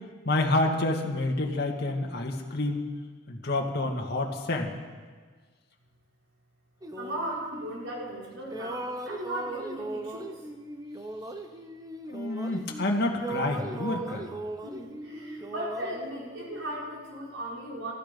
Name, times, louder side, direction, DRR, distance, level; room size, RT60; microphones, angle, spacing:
voice 1, 0.3-2.8 3.3-4.7 12.1-14.3, left 2 dB, 55° left, 1 dB, 1.9 m, -28 dB
sound 1, 6.8-8.2 8.5-12.9 13.1-17.0, right 2 dB, 20° right, 0.9 m, -39 dB
voice 2, 7.0-10.4 14.6-17.9, right 1 dB, 75° right, -4 dB, 5.2 m, -37 dB
19.0 x 14.0 x 5.3 m, 1.5 s
head